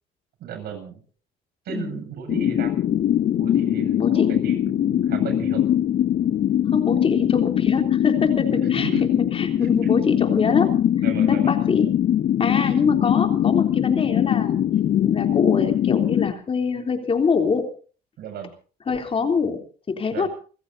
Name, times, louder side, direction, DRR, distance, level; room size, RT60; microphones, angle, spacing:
voice 1, 0.4-1.0 1.6-2.7 3.4-5.7 8.5-9.0 11.0-11.5 18.2-18.5 20.1-20.3, right 7 dB, 70° right, 6 dB, 7.8 m, -35 dB
sound 1, 2.3-16.3, left 11 dB, 55° left, 1.1 m, -21 dB
voice 2, 4.0-4.3 6.7-10.8 11.3-11.9 12.4-14.6 15.0-17.7 18.9-19.6 19.9-20.3, left 5 dB, 35° left, 5 dB, 3.3 m, -24 dB
30.0 x 15.5 x 2.7 m, 0.40 s
cardioid pair, 110°, 17 cm